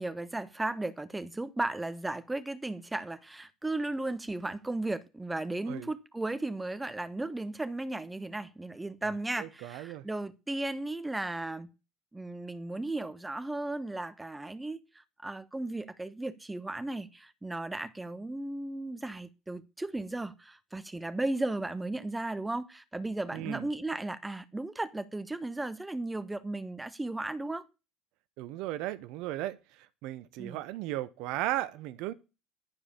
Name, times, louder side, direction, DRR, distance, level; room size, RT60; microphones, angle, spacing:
voice 1, 0.0-11.7 12.1-27.6 30.4-30.6, right 2 dB, 10° right, 1.2 m, -35 dB
voice 2, 9.4-10.0 23.3-23.7 28.4-32.1, right 15 dB, 65° right, 0.8 m, -36 dB
11.5 x 5.0 x 8.5 m
hypercardioid pair, 65°, 0 cm